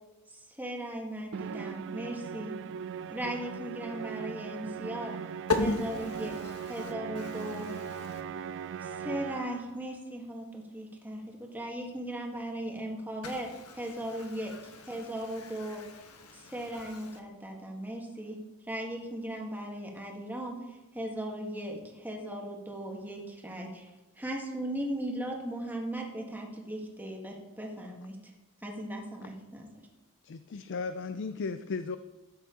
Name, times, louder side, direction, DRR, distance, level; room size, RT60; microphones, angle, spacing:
voice 1, 0.3-2.5 3.1-5.2 5.6-7.7 8.8-13.5 13.8-14.5 14.8-15.8 16.3-18.4 18.7-28.3 28.6-29.9, right 1 dB, 10° right, 0 dB, 1.7 m, -38 dB
Musical instrument, 1.3-9.8, right 7 dB, 60° right, 0.3 m, -39 dB
voice 2, 5.5-8.2 13.2-17.2, left 3 dB, 80° left, 4 dB, 1.5 m, -37 dB
voice 3, 30.2-32.0, left 4 dB, 55° left, 10 dB, 0.4 m, -35 dB
13.0 x 9.2 x 3.8 m, 1.1 s
head